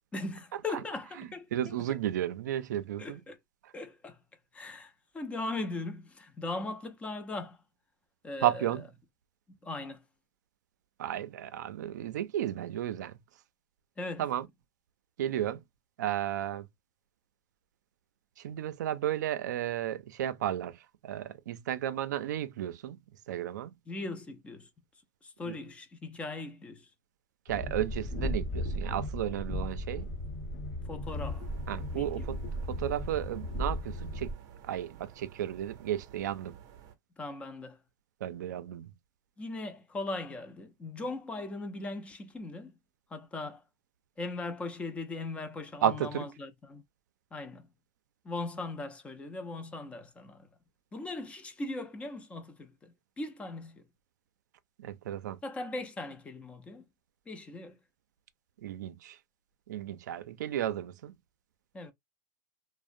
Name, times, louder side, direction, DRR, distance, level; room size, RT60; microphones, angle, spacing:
voice 1, 0.1-1.7 3.0-3.4 3.7-4.2 4.5-7.6 8.2-8.6 9.6-10.0 14.0-14.3 23.9-24.7 25.2-26.9 30.8-31.5 31.9-32.3 37.2-37.8 39.4-42.8 43.1-43.6 44.2-46.8 47.3-47.7 48.2-50.5 50.9-53.8 55.4-56.9 57.3-57.8 61.7-61.9, left 2 dB, 15° left, 0.4 m, -39 dB
voice 2, 1.2-3.2 3.6-3.7 8.4-8.9 11.0-13.2 14.2-14.5 15.2-15.6 16.0-16.7 18.4-23.0 23.3-23.7 25.4-25.6 27.5-30.1 31.7-32.4 32.7-34.3 34.6-36.6 38.2-38.9 45.8-46.2 54.8-55.4 58.6-59.2 59.7-61.1, right 11 dB, 85° right, 0.4 m, -33 dB
Train, 27.5-34.3, left 1 dB, 35° left, 0.8 m, -36 dB
sound 1, 31.0-37.0, right 9 dB, 45° right, 0.6 m, -53 dB
2.4 x 2.0 x 2.5 m
supercardioid pair, 135°, 9 cm